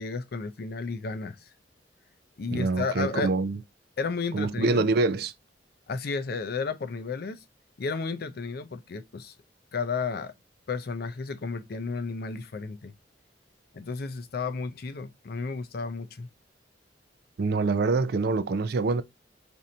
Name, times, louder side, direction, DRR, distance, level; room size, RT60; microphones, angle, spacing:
voice 1, 0.0-1.5 2.4-3.3 4.0-4.9 5.9-7.4 7.8-9.3 9.7-10.3 10.7-12.9 13.7-16.3, left 4 dB, 55° left, 0.5 m, -32 dB
voice 2, 2.5-3.6 4.3-5.3 17.4-19.0, right 3 dB, 60° right, 0.4 m, -25 dB
2.7 x 2.5 x 4.3 m
head